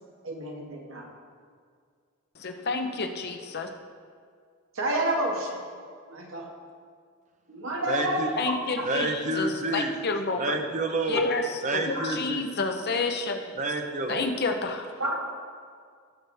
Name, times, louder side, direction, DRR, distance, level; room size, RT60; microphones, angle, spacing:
voice 1, 0.2-1.1 4.7-5.6 6.1-6.5 7.5-8.9 11.9-12.1 15.0-15.1, right 1 dB, 65° right, 0 dB, 1.6 m, -29 dB
voice 2, 2.3-3.7 8.4-10.7 11.1-13.6 14.1-14.9, left 4 dB, 50° left, 5 dB, 0.7 m, -30 dB
voice 3, 7.9-8.3 8.8-9.9 10.4-11.3 11.6-12.5 13.6-14.3, right 2 dB, 35° right, 4 dB, 0.8 m, -29 dB
17.5 x 6.0 x 3.5 m, 2.1 s
head